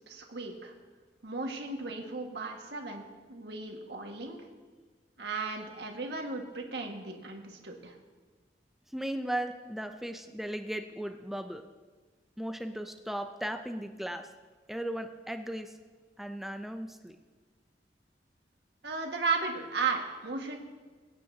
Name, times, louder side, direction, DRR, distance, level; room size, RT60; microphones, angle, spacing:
voice 1, 0.1-0.7 1.2-4.4 5.2-7.9 18.8-20.6, right 4 dB, 75° right, 2 dB, 1.7 m, -35 dB
voice 2, 8.9-11.6 12.4-14.3 14.7-15.8 16.2-17.2, right 1 dB, ahead, 6 dB, 0.5 m, -36 dB
23.0 x 9.4 x 2.8 m, 1.4 s
head